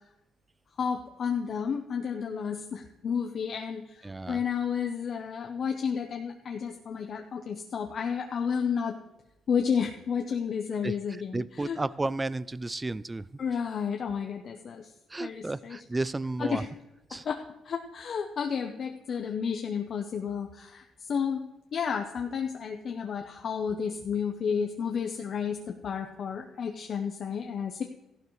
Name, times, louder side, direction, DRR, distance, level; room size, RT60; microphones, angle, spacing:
voice 1, 0.8-9.0 9.5-11.8 13.4-14.9 15.2-15.8 16.4-16.7 17.1-21.4 21.7-27.8, left 6 dB, 55° left, 4 dB, 0.8 m, -31 dB
voice 2, 4.0-4.4 10.8-13.3 15.1-16.7 17.1-17.3, right 2 dB, 20° right, 18 dB, 0.4 m, -33 dB
14.5 x 11.5 x 3.2 m, 0.93 s
cardioid pair, 90°, 0 cm